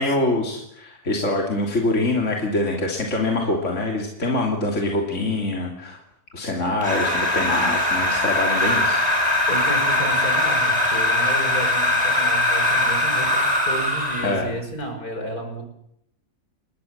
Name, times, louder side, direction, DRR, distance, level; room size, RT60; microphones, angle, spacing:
voice 1, 0.0-6.0 6.3-9.0 14.2-14.5, left 2 dB, 50° left, 0 dB, 3.5 m, -24 dB
sound 1, 6.8-14.4, left 1 dB, 25° right, 4.7 m, -21 dB
voice 2, 7.4-7.7 9.5-15.6, equal, 70° left, 5 dB, 5.9 m, -32 dB
28.5 x 21.0 x 7.4 m, 0.76 s
omnidirectional pair, 1.6 m